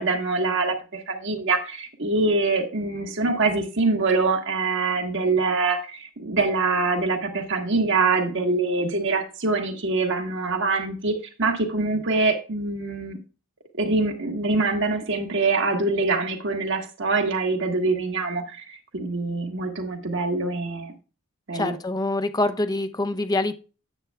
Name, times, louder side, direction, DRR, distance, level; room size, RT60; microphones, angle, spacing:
voice 1, 0.0-13.2 13.8-20.9 21.5-21.7, right 3 dB, 60° right, 3 dB, 1.3 m, -24 dB
voice 2, 21.5-23.5, left 2 dB, 20° left, 10 dB, 0.6 m, -25 dB
9.8 x 7.7 x 2.3 m, 0.33 s
head